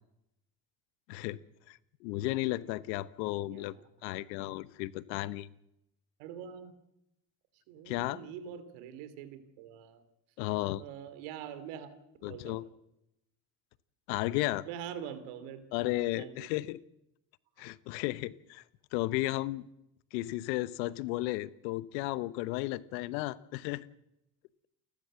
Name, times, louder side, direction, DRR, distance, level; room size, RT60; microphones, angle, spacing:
voice 1, 1.1-1.4 1.7-3.7 4.0-5.5 7.9-8.2 10.4-10.8 12.2-12.6 14.1-14.6 15.7-16.8 17.6-18.6 18.9-19.6 20.1-23.9, left 18 dB, 80° left, 18 dB, 1.0 m, -34 dB
voice 2, 6.2-6.7 7.7-10.0 10.8-11.9 12.2-12.6 14.7-15.6 16.1-16.3, right 8 dB, 80° right, 12 dB, 2.9 m, -44 dB
29.0 x 12.0 x 7.6 m, 0.85 s
hypercardioid pair, 65°, 50 cm